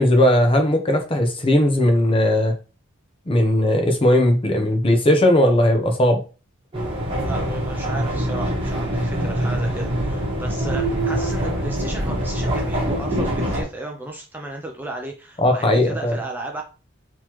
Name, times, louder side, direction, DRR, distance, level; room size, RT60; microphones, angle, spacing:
voice 1, 0.0-2.5 3.3-6.2 15.4-16.2, left 1 dB, 25° left, 4 dB, 0.7 m, -18 dB
sound 1, 6.7-13.6, right 1 dB, 25° right, 1.3 m, -24 dB
voice 2, 7.1-16.6, right 2 dB, 10° right, 1 dB, 0.4 m, -34 dB
3.8 x 3.0 x 3.0 m, 0.34 s
head